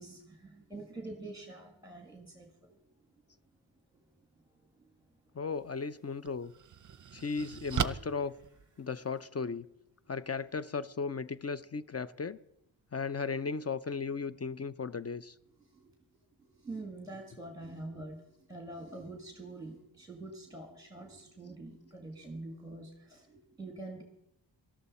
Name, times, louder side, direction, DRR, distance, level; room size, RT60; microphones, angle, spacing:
voice 1, 0.0-2.8 5.5-5.6 15.7-15.9 16.6-24.0, right 2 dB, 10° right, 1.8 m, -45 dB
voice 2, 5.4-6.5 7.1-8.4 8.8-9.7 10.1-12.4 12.9-15.3, left 5 dB, 35° left, 0.4 m, -36 dB
sound 1, 5.5-5.7 6.2-9.3, right 8 dB, 40° right, 0.6 m, -37 dB
18.0 x 13.0 x 4.2 m
wide cardioid pair, 95°, 47 cm